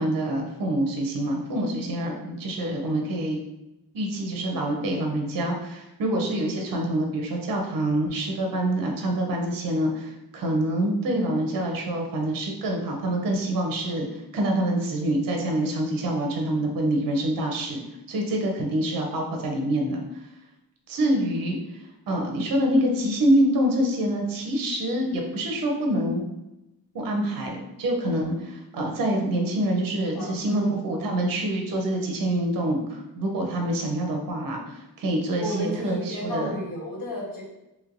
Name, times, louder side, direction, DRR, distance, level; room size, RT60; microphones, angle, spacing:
voice 1, 0.0-3.4 3.9-17.8 18.1-20.3 20.9-26.2 26.9-36.6, right 1 dB, 55° right, 1 dB, 0.7 m, -26 dB
voice 2, 30.1-30.7 35.4-37.4, equal, 55° left, -5 dB, 1.1 m, -32 dB
3.1 x 3.1 x 2.5 m, 0.93 s
wide cardioid pair, 165°, 40 cm